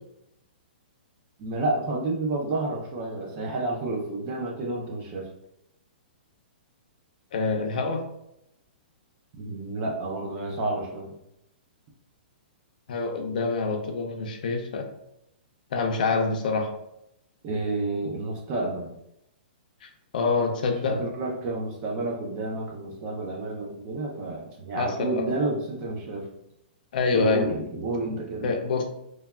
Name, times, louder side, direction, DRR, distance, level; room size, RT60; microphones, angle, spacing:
voice 1, 1.4-5.3 9.3-11.2 17.4-18.9 20.8-26.3 27.1-28.5, right 2 dB, 25° right, 0 dB, 0.4 m, -30 dB
voice 2, 7.3-8.0 12.9-14.8 15.7-16.7 20.1-21.0 24.8-25.3 26.9-27.4 28.4-28.8, left 4 dB, 55° left, 3 dB, 0.5 m, -26 dB
3.1 x 2.2 x 2.3 m, 0.81 s
hypercardioid pair, 170°, 6 cm